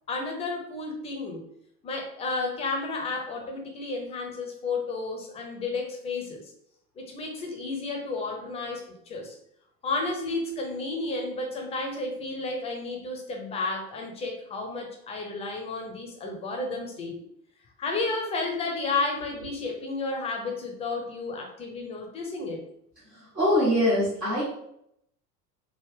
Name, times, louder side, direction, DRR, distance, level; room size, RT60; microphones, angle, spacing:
voice 1, 0.1-1.4 1.8-6.4 7.0-9.4 9.8-17.2 17.8-22.6, left 3 dB, 15° left, 2 dB, 0.4 m, -32 dB
voice 2, 23.1-24.4, left 1 dB, 80° right, -8 dB, 1.4 m, -23 dB
3.6 x 2.0 x 3.2 m, 0.73 s
figure-of-eight pair, 75°, 48 cm